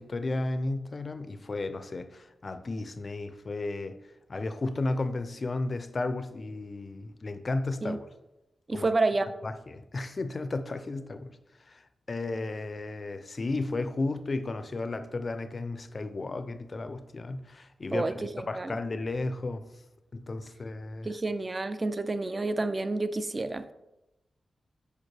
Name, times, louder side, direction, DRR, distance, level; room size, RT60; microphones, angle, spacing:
voice 1, 0.0-4.0 4.3-8.1 8.7-8.9 9.4-11.4 11.7-11.8 12.1-19.7 20.1-21.1, left 2 dB, 45° left, 0.5 m, -33 dB
voice 2, 8.7-9.3 17.9-18.8 21.0-23.7, right 2 dB, 35° right, 0.4 m, -29 dB
6.5 x 5.1 x 3.3 m
cardioid pair, 70°, 0 cm